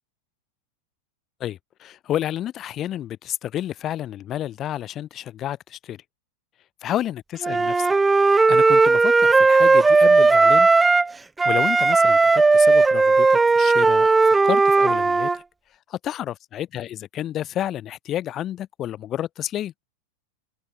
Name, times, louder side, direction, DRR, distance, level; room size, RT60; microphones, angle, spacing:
voice 1, 1.4-6.0 6.8-7.9 8.5-10.7 11.4-15.4 15.9-19.7, left 12 dB, 30° left, 4.2 m, -30 dB
Wind instrument woodwind instrument, 7.4-11.1 11.4-15.4, right 3 dB, 10° right, 0.6 m, -16 dB
figure-of-eight pair, 90°, 0 cm